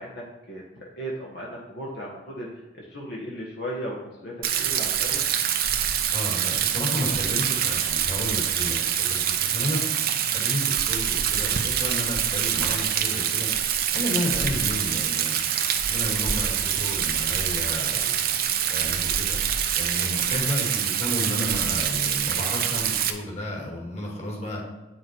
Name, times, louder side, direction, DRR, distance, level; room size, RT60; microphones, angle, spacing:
voice 1, 0.0-5.3, equal, 60° left, -4 dB, 1.4 m, -36 dB
Rain, 4.4-23.1, right 9 dB, 55° right, 0.7 m, -25 dB
voice 2, 6.1-9.8 10.3-13.5 13.9-15.3 15.8-18.2 18.7-19.4 19.7-24.6, left 1 dB, 35° left, -2 dB, 2.3 m, -32 dB
8.7 x 6.1 x 4.6 m, 1.1 s
head